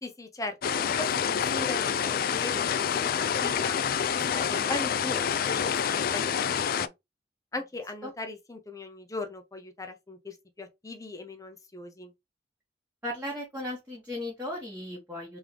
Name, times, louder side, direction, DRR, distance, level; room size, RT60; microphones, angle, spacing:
voice 1, 0.0-3.8 4.1-6.3 6.5-6.9 7.5-12.1, left 2 dB, 20° left, 0.7 m, -39 dB
sound 1, 0.6-6.9, left 7 dB, 55° left, 0.3 m, -27 dB
voice 2, 13.0-15.4, left 1 dB, 10° right, 1.3 m, -36 dB
3.7 x 3.4 x 3.1 m
head